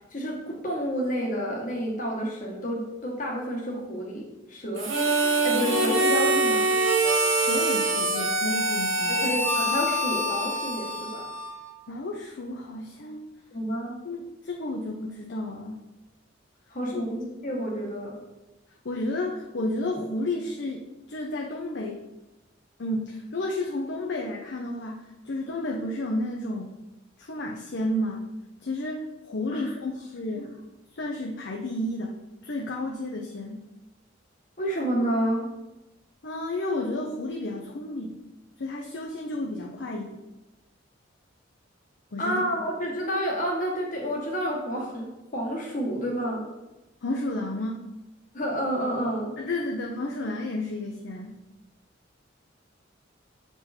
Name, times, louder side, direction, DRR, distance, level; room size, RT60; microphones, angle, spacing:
voice 1, 0.1-4.9 5.4-6.7 9.1-11.2 13.5-14.0 16.7-18.2 29.5-29.6 30.3-30.4 34.6-35.5 42.2-46.4 48.3-49.4, equal, 45° left, -1 dB, 1.5 m, -29 dB
Harmonica, 4.8-11.7, right 2 dB, 80° right, 1.1 m, -24 dB
voice 2, 7.3-9.2 11.9-13.2 14.0-15.8 16.9-17.0 18.8-22.0 22.8-26.8 27.2-28.3 28.6-30.5 30.9-32.2 32.4-33.6 36.2-38.2 38.6-40.2 42.1-42.4 47.0-47.9 49.4-51.4, left 1 dB, 60° left, 0 dB, 0.7 m, -32 dB
7.1 x 4.5 x 4.3 m, 1.0 s
head